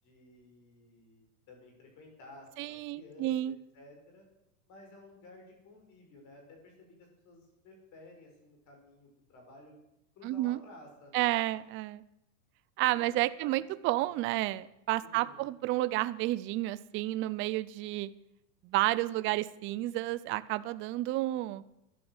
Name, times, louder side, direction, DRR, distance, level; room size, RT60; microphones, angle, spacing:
voice 1, 0.0-4.3 4.7-9.7 10.1-11.4 12.8-13.6 14.3-14.5 15.0-15.5, left 2 dB, 35° left, 2 dB, 6.0 m, -55 dB
voice 2, 2.6-3.6 10.2-10.6 11.1-12.0 12.8-18.1 18.6-21.6, right 16 dB, 25° right, 15 dB, 0.5 m, -31 dB
13.5 x 11.0 x 8.0 m, 0.84 s
supercardioid pair, 135°, 47 cm